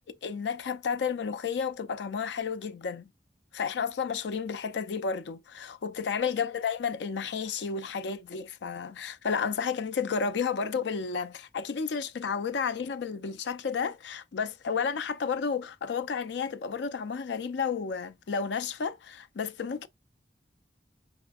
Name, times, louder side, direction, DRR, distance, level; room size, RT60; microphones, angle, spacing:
voice 1, 0.1-3.1 3.5-19.9, left 6 dB, 80° left, 0.4 m, -32 dB
4.8 x 4.3 x 2.3 m
head